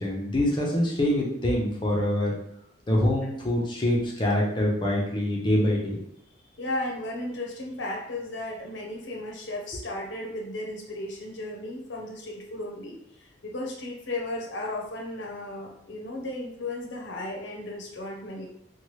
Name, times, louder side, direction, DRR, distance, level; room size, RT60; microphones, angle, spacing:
voice 1, 0.0-2.3 2.9-5.9, left 1 dB, 25° left, -2 dB, 0.6 m, -25 dB
voice 2, 6.6-18.5, left 1 dB, 65° left, 0 dB, 0.6 m, -35 dB
2.9 x 2.3 x 3.1 m, 0.76 s
head